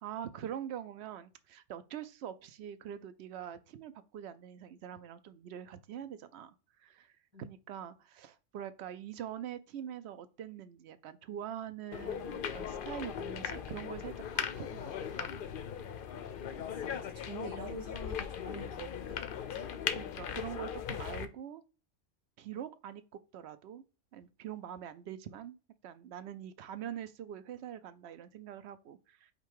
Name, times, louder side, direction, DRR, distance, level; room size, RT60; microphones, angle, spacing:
voice 1, 0.0-7.1 7.4-15.4 19.9-21.6 22.4-23.0 23.3-23.8 24.1-25.5 25.8-29.3, right 9 dB, 70° right, 0.8 m, -44 dB
sound 1, 11.9-21.3, left 8 dB, 60° left, 0.6 m, -39 dB
voice 2, 16.6-19.8, equal, 20° right, 1.4 m, -45 dB
5.2 x 2.2 x 4.5 m
omnidirectional pair, 1.3 m